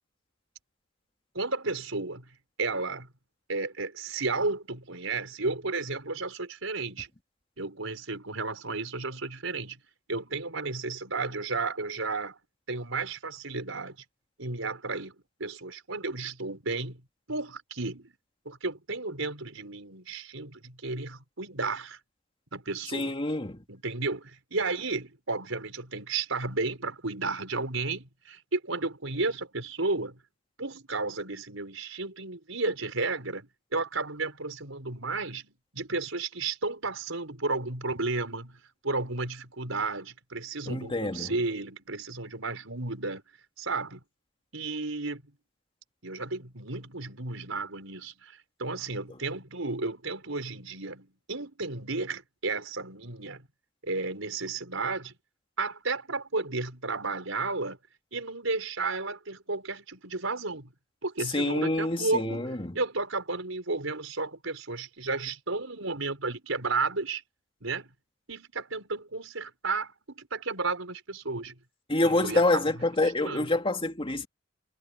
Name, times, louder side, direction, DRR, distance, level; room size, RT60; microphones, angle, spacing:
voice 1, 1.3-2.3 2.6-3.1 3.5-7.1 7.6-9.8 10.1-12.4 12.7-14.0 14.4-15.1 15.4-17.0 17.3-18.1 18.4-22.0 22.5-23.2 23.7-30.2 30.6-43.2 43.6-44.0 44.5-45.2 46.0-53.5 53.8-55.1 55.6-57.8 58.1-60.7 61.0-67.2 67.6-67.9 68.3-71.6 72.0-73.5, right 3 dB, 80° right, 5.0 m, -33 dB
voice 2, 22.9-23.6 40.7-41.3 61.3-62.8 71.9-74.3, left 2 dB, 25° left, 2.5 m, -27 dB
head